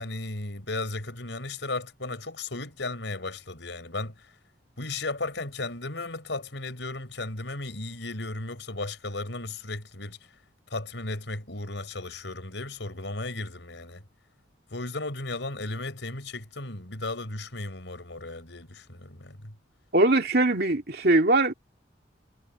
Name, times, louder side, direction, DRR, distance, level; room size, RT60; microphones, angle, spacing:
voice 1, 0.0-4.3 4.8-10.2 10.7-14.0 14.7-19.5, left 2 dB, 80° left, 4.6 m, -35 dB
voice 2, 19.9-21.5, right 2 dB, 55° right, 2.7 m, -21 dB
head